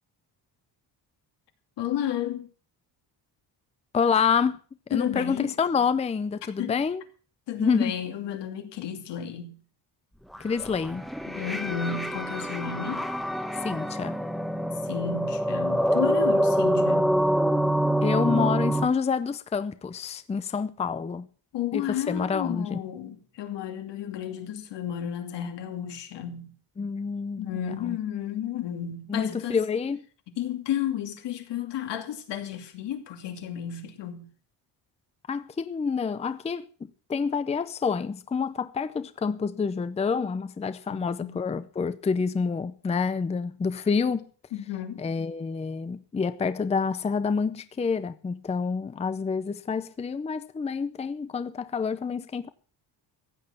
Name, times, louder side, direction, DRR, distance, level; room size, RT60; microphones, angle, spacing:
voice 1, 1.8-2.5 4.9-5.5 6.6-6.8 7.5-9.6 11.3-13.1 14.8-17.2 21.5-26.5 27.4-29.6 30.3-34.3 40.9-41.4 44.5-45.0, left 9 dB, 80° left, 2.7 m, -32 dB
voice 2, 3.9-4.6 4.9-7.0 7.6-7.9 10.4-11.1 13.6-14.2 18.0-21.3 21.7-21.8 22.1-22.8 26.8-28.0 29.1-30.0 35.3-36.7 37.1-44.2 45.0-52.5, left 5 dB, 15° left, 0.6 m, -28 dB
sound 1, 10.3-18.9, right 1 dB, ahead, 1.1 m, -26 dB
15.5 x 9.0 x 7.2 m
cardioid pair, 155°, 42 cm